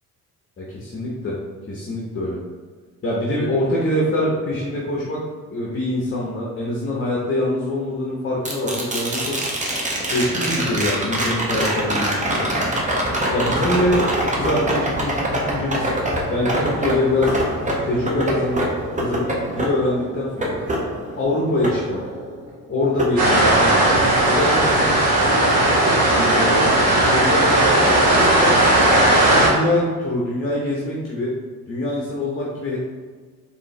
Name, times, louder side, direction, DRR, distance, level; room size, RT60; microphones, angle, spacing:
voice 1, 0.6-1.4 1.7-2.4 3.0-5.2 5.5-9.4 10.1-12.5 13.3-14.0 14.3-15.9 16.3-17.3 17.8-18.6 18.9-20.6 21.2-22.0 22.7-23.9 24.3-25.0 26.3-28.5 29.3-31.3 31.7-32.8, left 1 dB, 25° left, -4 dB, 1.0 m, -24 dB
sound 1, 8.4-22.5 23.0-24.0 26.3-26.4, right 1 dB, 15° right, 0.9 m, -24 dB
sound 2, 23.2-29.5, right 1 dB, 50° right, 1.4 m, -16 dB
4.4 x 3.5 x 3.2 m, 1.5 s
figure-of-eight pair, 50°, 46 cm